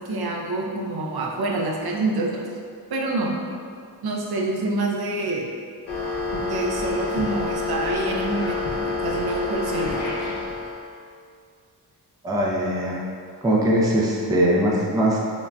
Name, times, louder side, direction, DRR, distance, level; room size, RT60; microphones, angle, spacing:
voice 1, 0.0-2.5 2.9-3.4 4.0-5.4 6.3-10.3, right 2 dB, 65° right, -1 dB, 0.5 m, -27 dB
sound 1, 5.9-10.9, left 3 dB, 70° left, 0.7 m, -28 dB
voice 2, 12.2-13.0 13.4-15.2, right 1 dB, 10° right, -3 dB, 0.3 m, -21 dB
3.7 x 2.1 x 2.3 m, 2.3 s
cardioid pair, 75°, 41 cm